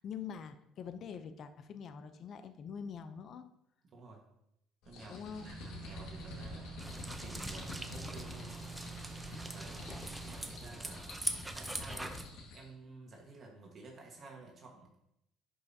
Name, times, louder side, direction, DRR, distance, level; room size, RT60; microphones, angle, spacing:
voice 1, 0.0-3.5 5.1-5.5, left 7 dB, 45° left, 9 dB, 0.6 m, -44 dB
voice 2, 3.8-4.2 4.8-6.7 7.2-8.5 9.5-9.9 10.2-11.2 11.5-12.3 12.5-14.9, right 3 dB, 35° right, 0 dB, 1.5 m, -52 dB
sound 1, 4.8-12.7, left 3 dB, 70° left, 1.8 m, -49 dB
sound 2, 5.3-10.5, right 6 dB, 55° right, 2.0 m, -49 dB
sound 3, 6.8-12.3, right 1 dB, 5° right, 0.6 m, -42 dB
10.5 x 5.5 x 2.8 m, 0.79 s
cardioid pair, 135°, 0 cm